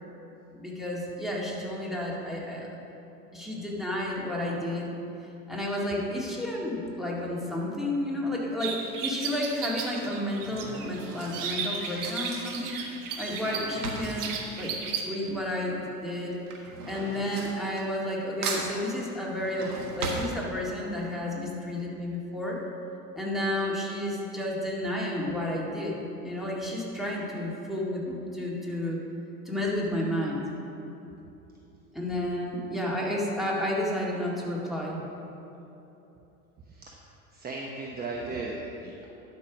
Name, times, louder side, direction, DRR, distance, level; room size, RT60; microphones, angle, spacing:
voice 1, 0.5-2.7 3.3-4.9 5.5-12.8 13.2-14.7 15.0-16.4 16.9-22.6 23.2-29.0 29.5-30.5 31.9-35.1, left 1 dB, ahead, -4 dB, 2.1 m, -31 dB
Drawer open or close / Cutlery silverware, 8.4-8.8 9.6-15.5 15.8-18.2 18.4-21.0 21.4-21.5 21.7-21.8, right 3 dB, 80° right, 1.6 m, -38 dB
sound 1, 8.6-15.0, right 6 dB, 45° right, 1.4 m, -35 dB
voice 2, 37.3-39.1, right 3 dB, 20° right, -1 dB, 1.0 m, -36 dB
11.5 x 5.7 x 6.1 m, 3.0 s
hypercardioid pair, 85°, 45 cm